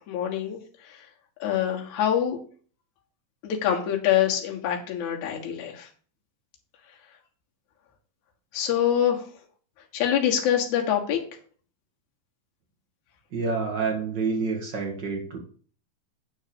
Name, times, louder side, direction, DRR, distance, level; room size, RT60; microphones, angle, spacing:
voice 1, 0.1-0.6 1.4-2.4 3.4-5.8 8.5-9.2 9.9-11.2, left 10 dB, 60° left, 1 dB, 2.7 m, -25 dB
voice 2, 13.3-15.4, right 4 dB, 50° right, 2 dB, 1.3 m, -28 dB
8.9 x 4.5 x 6.9 m, 0.44 s
omnidirectional pair, 4.2 m